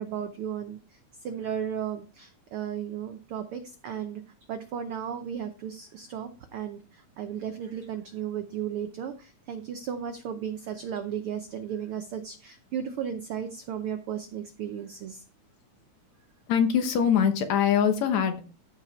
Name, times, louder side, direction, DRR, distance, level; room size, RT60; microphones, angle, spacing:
voice 1, 0.0-4.2 4.5-15.2, right 8 dB, 80° right, 8 dB, 1.2 m, -35 dB
voice 2, 16.5-18.4, left 8 dB, 70° left, 7 dB, 2.4 m, -23 dB
14.5 x 5.0 x 4.4 m, 0.36 s
omnidirectional pair, 3.4 m